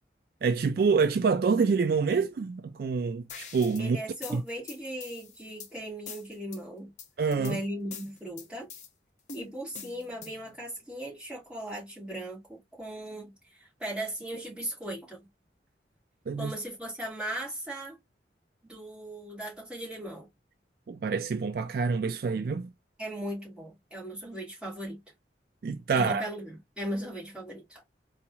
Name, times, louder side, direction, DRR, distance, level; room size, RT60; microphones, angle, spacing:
voice 1, 0.4-4.0 4.3-4.4 7.2-7.6 16.3-16.5 20.9-22.7 25.6-26.2, right 5 dB, 55° right, 0.3 m, -26 dB
sound 1, 3.3-3.8 4.2-5.7 6.1-6.6 7.0-7.5 7.9-8.9 9.3-10.5, left 6 dB, 40° left, 0.7 m, -44 dB
voice 2, 3.8-6.9 7.4-8.7 9.3-15.2 16.4-18.0 18.6-20.3 23.0-25.0 25.9-27.8, right 1 dB, 5° right, 2.1 m, -38 dB
3.9 x 2.4 x 2.9 m
head